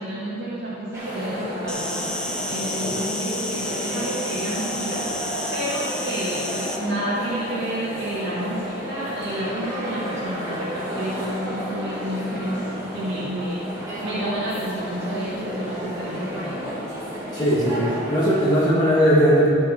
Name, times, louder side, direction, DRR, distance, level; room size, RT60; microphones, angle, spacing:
voice 1, 0.0-5.1 5.5-13.7 14.0-16.7, equal, 65° right, -9 dB, 2.3 m, -30 dB
sound 1, 0.9-18.7, equal, 15° right, 2.5 m, -32 dB
Insect, 1.7-6.8, left 1 dB, 5° left, 0.6 m, -31 dB
voice 2, 17.3-19.5, equal, 25° left, -8 dB, 2.1 m, -19 dB
13.0 x 6.1 x 4.6 m, 2.4 s
head